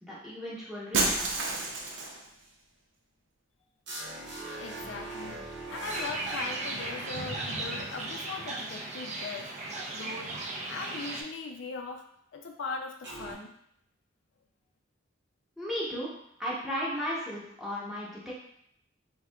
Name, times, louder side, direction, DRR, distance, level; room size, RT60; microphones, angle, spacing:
voice 1, 0.0-1.3 15.6-16.1 16.4-18.3, equal, ahead, -7 dB, 0.8 m, -35 dB
Shatter, 0.9-2.3, right 3 dB, 85° right, 0.5 m, -29 dB
sound 1, 3.9-8.3 13.0-13.3, right 2 dB, 65° right, 1.0 m, -42 dB
voice 2, 4.6-10.4 10.7-12.0 12.3-13.5, left 4 dB, 75° left, 3 dB, 0.4 m, -40 dB
sound 2, 5.9-11.2, right 2 dB, 40° right, 0.4 m, -36 dB
3.5 x 2.7 x 2.2 m, 0.73 s
head